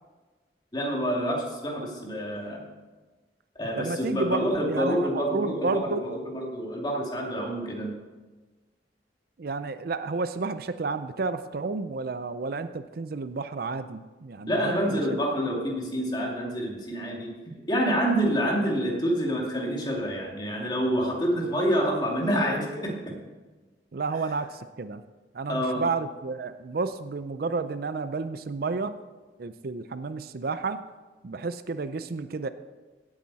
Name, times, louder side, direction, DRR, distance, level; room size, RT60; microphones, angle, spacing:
voice 1, 0.7-2.6 3.5-8.0 14.5-17.4 17.7-23.2 25.5-25.9, equal, 25° left, -1 dB, 2.4 m, -27 dB
voice 2, 3.8-6.0 9.4-15.0 23.9-25.0 25.3-29.0 29.4-30.8 31.2-32.5, right 4 dB, 55° right, 12 dB, 0.5 m, -31 dB
17.0 x 8.7 x 4.2 m, 1.3 s
head